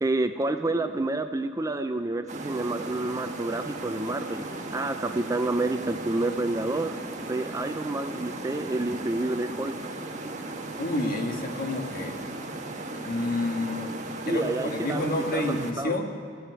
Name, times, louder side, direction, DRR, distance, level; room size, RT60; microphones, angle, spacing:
voice 1, 0.0-4.4 4.7-7.0 7.3-9.7 14.3-16.0, right 2 dB, 15° right, 8 dB, 0.4 m, -29 dB
sound 1, 2.3-15.7, right 2 dB, 40° right, 1.3 m, -36 dB
voice 2, 10.8-12.2 13.0-13.9 14.3-16.1, left 1 dB, 50° left, 3 dB, 1.5 m, -29 dB
15.5 x 7.9 x 9.5 m, 2.6 s
head